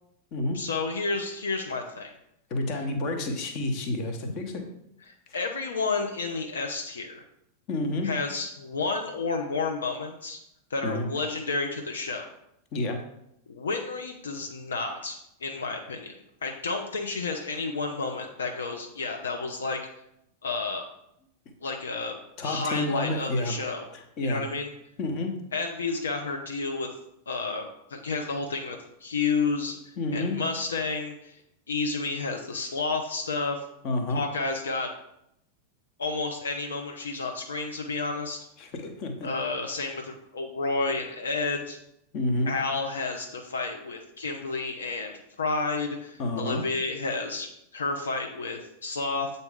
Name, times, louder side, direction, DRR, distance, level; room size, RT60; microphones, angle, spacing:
voice 1, 0.5-2.1 5.1-7.2 8.0-10.4 10.7-12.3 13.5-15.2 15.4-16.1 16.4-19.8 20.4-20.9 21.6-23.8 24.2-24.7 25.5-26.9 27.3-31.4 31.7-33.7 34.1-34.9 36.0-38.4 39.2-41.8 42.5-49.3, left 3 dB, 70° left, 3 dB, 0.6 m, -31 dB
voice 2, 2.5-4.7 7.7-8.1 10.8-11.1 12.7-13.0 22.4-23.5 23.9-24.4 25.0-25.3 30.0-30.4 33.8-34.2 38.6-39.3 42.1-42.5 46.2-46.6, left 2 dB, 40° left, 5 dB, 1.1 m, -29 dB
8.1 x 4.1 x 3.6 m, 0.79 s
figure-of-eight pair, 90°, 0 cm